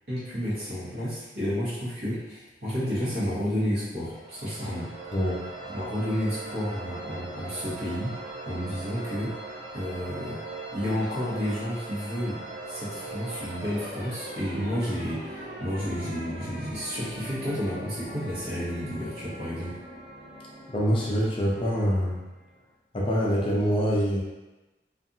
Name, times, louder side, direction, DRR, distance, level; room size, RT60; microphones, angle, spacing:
voice 1, 0.1-4.9 5.7-8.1 8.4-9.3 9.7-10.4 10.7-12.4 12.7-19.8, equal, 60° right, -9 dB, 1.1 m, -31 dB
sound 1, 4.0-22.6, right 2 dB, 90° right, 1.0 m, -40 dB
voice 2, 20.7-22.2 22.9-24.2, equal, 30° left, -4 dB, 0.4 m, -25 dB
2.6 x 2.4 x 2.6 m, 1.1 s
head